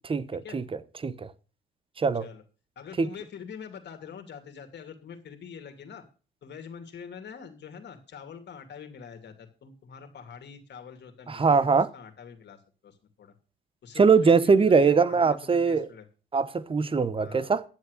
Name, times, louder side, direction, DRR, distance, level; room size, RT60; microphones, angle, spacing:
voice 1, 0.1-0.6 1.0-1.3 2.0-2.3 3.0-3.1 11.3-11.9 14.0-15.9 16.3-17.6, right 5 dB, 25° right, 0.8 m, -22 dB
voice 2, 2.8-6.0 6.4-12.6 12.8-13.3 13.8-16.1 17.2-17.5, left 7 dB, 60° left, 2.6 m, -45 dB
10.5 x 7.5 x 6.5 m
cardioid pair, 90°, 20 cm